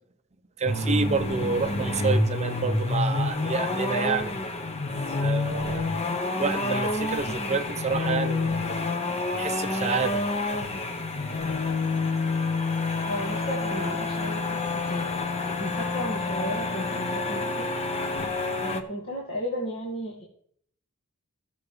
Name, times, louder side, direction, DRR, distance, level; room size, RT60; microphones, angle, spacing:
voice 1, 0.6-4.3 5.2-6.0 6.4-8.8 9.3-10.2, right 4 dB, 30° right, 9 dB, 0.6 m, -28 dB
sound 1, 0.7-18.8, left 2 dB, 30° left, 0.9 m, -28 dB
voice 2, 13.1-15.1 15.6-17.7 18.6-20.2, equal, 50° left, -5 dB, 2.3 m, -34 dB
17.0 x 6.8 x 3.3 m, 0.63 s
head